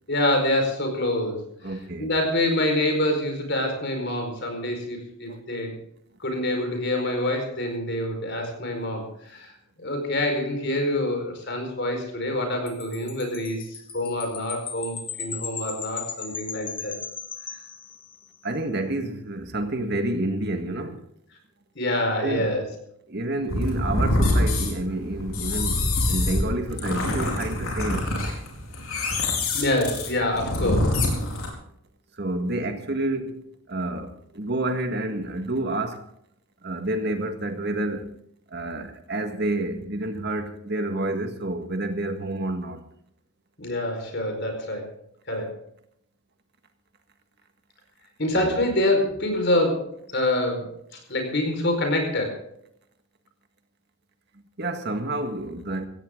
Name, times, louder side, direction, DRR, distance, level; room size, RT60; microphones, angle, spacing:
voice 1, 0.1-1.4 2.0-5.8 6.2-9.5 9.8-17.0 21.7-22.7 29.5-30.9 43.6-44.9 45.3-45.5 48.2-50.7 51.1-52.4, left 1 dB, 50° left, 4.8 m, -26 dB
voice 2, 1.6-2.1 5.3-5.4 18.4-21.0 22.2-22.6 23.1-28.1 32.2-36.0 36.6-38.1 38.5-42.8 48.3-48.6 54.6-55.9, right 1 dB, 50° right, 1.8 m, -29 dB
Wind chime, 12.7-18.3, left 6 dB, 25° left, 1.3 m, -37 dB
sound 1, 23.5-31.5, left 1 dB, 75° left, 4.5 m, -25 dB
17.0 x 16.5 x 3.8 m
head